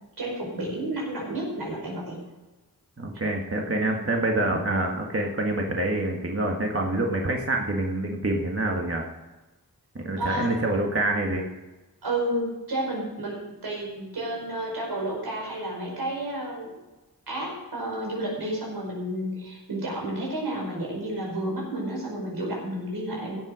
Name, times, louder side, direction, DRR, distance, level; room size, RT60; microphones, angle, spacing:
voice 1, 0.2-2.2 3.8-4.1 10.2-10.5 12.0-16.7 17.3-23.4, right 1 dB, 85° right, -2 dB, 5.1 m, -31 dB
voice 2, 3.0-9.0 10.0-11.4, right 2 dB, 35° right, 1 dB, 1.8 m, -26 dB
16.0 x 7.7 x 5.1 m, 1.1 s
cardioid pair, 45°, 38 cm